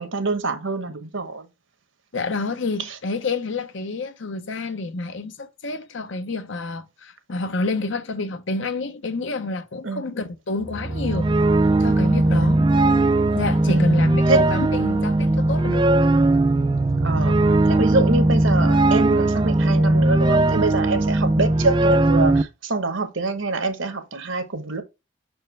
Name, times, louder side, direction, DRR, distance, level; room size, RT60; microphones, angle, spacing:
voice 1, 0.0-1.5 9.8-10.0 12.3-12.6 13.7-14.0 14.3-14.4 17.0-24.8, right 3 dB, 65° right, 1.1 m, -25 dB
voice 2, 2.1-11.3 11.8-12.6 13.3-15.9, left 3 dB, 60° left, 0.8 m, -29 dB
sound 1, 10.6-22.4, right 2 dB, 20° right, 0.3 m, -19 dB
6.4 x 4.5 x 3.3 m
head